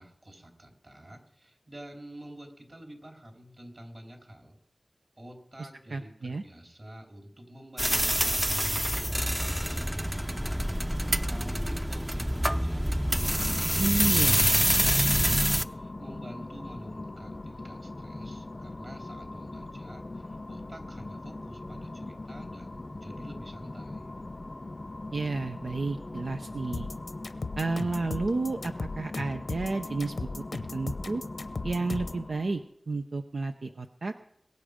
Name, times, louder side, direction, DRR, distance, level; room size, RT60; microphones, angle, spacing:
voice 1, 0.0-4.6 5.2-10.7 11.0-12.9 13.2-24.1, right 1 dB, 45° right, 2 dB, 3.6 m, -48 dB
voice 2, 5.9-6.4 13.8-14.4 25.1-26.9 27.6-30.4 30.7-31.2 31.6-34.1, right 3 dB, 85° right, 6 dB, 0.6 m, -31 dB
sound 1, 7.8-15.6, equal, 5° right, 0.5 m, -26 dB
sound 2, 12.9-32.7, left 2 dB, 45° left, 0.5 m, -41 dB
sound 3, 26.7-32.2, left 3 dB, 85° left, 0.8 m, -36 dB
22.0 x 8.0 x 5.0 m, 0.72 s
wide cardioid pair, 55°, 0 cm